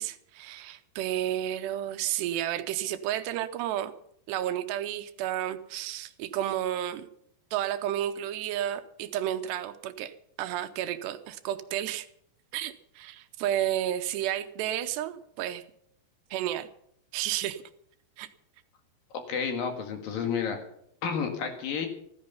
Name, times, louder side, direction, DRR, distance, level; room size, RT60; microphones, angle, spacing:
voice 1, 0.0-3.9 4.3-7.1 7.5-10.1 10.4-12.1 12.5-15.6 16.3-16.7 17.1-17.6 18.2-18.3, right 12 dB, 80° right, 10 dB, 2.9 m, -31 dB
voice 2, 19.1-20.6 21.0-21.9, left 6 dB, 60° left, 5 dB, 3.3 m, -31 dB
15.0 x 14.0 x 5.6 m, 0.70 s
omnidirectional pair, 4.9 m